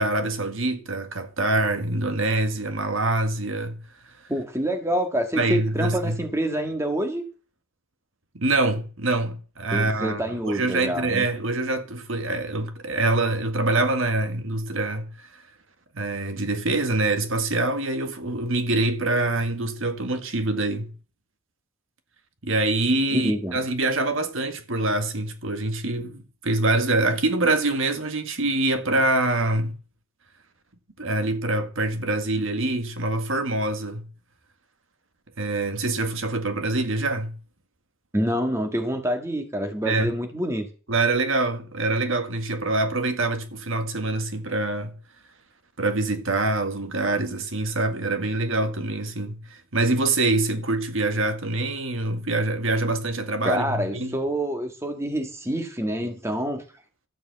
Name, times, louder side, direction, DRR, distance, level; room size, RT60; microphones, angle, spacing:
voice 1, 0.0-3.8 5.3-6.2 8.3-15.1 15.9-20.9 22.4-29.7 31.0-34.1 35.4-37.4 39.8-40.1 40.9-45.0 45.8-54.2, right 2 dB, 60° right, 1.6 m, -25 dB
voice 2, 4.3-7.2 9.7-11.2 23.1-23.6 38.1-40.7 53.4-56.6, right 1 dB, 15° right, 1.8 m, -27 dB
12.5 x 6.8 x 7.9 m
head